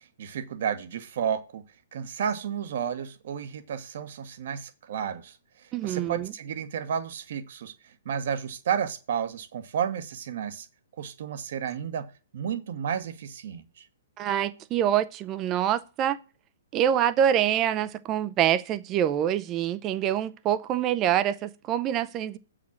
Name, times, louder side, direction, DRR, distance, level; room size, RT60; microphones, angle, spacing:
voice 1, 0.2-1.6 1.9-10.7 11.0-12.1 12.3-13.8, right 8 dB, 55° right, 1.2 m, -32 dB
voice 2, 5.7-6.3 14.2-16.2 16.7-22.4, right 10 dB, 25° right, 0.7 m, -25 dB
8.1 x 5.0 x 7.3 m
figure-of-eight pair, 120°, 0 cm